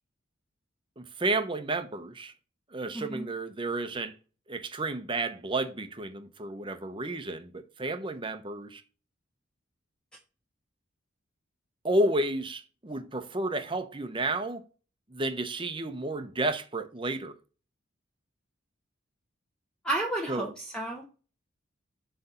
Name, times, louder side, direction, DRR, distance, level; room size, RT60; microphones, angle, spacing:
voice 1, 1.0-2.3 2.7-4.1 4.5-8.8 11.8-14.6 15.1-17.3 20.3-20.5, right 2 dB, 25° right, 0.8 m, -31 dB
voice 2, 2.9-3.3 19.8-21.2, right 2 dB, 5° left, 0.9 m, -32 dB
7.8 x 3.4 x 5.7 m
head